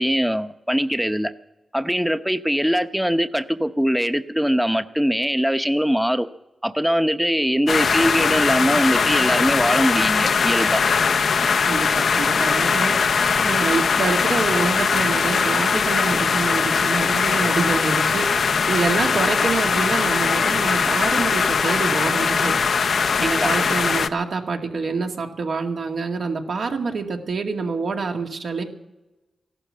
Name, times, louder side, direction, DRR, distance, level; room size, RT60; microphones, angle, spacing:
voice 1, 0.0-1.3 1.7-6.3 6.6-10.8 23.4-23.5, equal, 5° right, 10 dB, 0.8 m, -22 dB
sound 1, 7.7-24.1, left 5 dB, 80° left, 0.6 m, -20 dB
voice 2, 11.6-22.9 23.2-28.6, right 4 dB, 80° right, 2 dB, 2.1 m, -26 dB
14.5 x 12.0 x 7.5 m, 1.0 s
cardioid pair, 50°, 0 cm